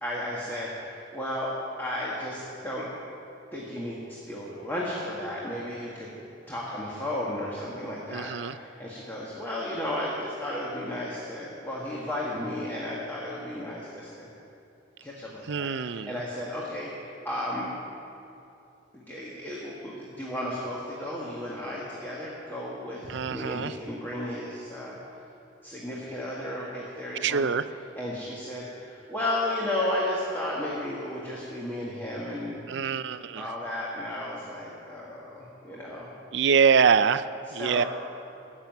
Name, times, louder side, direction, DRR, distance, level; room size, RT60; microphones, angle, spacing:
voice 1, 0.0-1.5 1.8-2.9 3.5-6.1 6.5-14.3 15.0-17.7 18.9-25.0 25.6-27.5 28.0-32.6 33.4-36.1 37.5-37.9, left 1 dB, 10° left, -6 dB, 1.8 m, -34 dB
voice 2, 8.1-8.6 15.5-16.2 23.1-23.7 27.2-27.6 32.7-33.5 36.3-37.8, right 6 dB, 65° right, 14 dB, 0.5 m, -24 dB
14.5 x 7.5 x 9.3 m, 2.7 s
head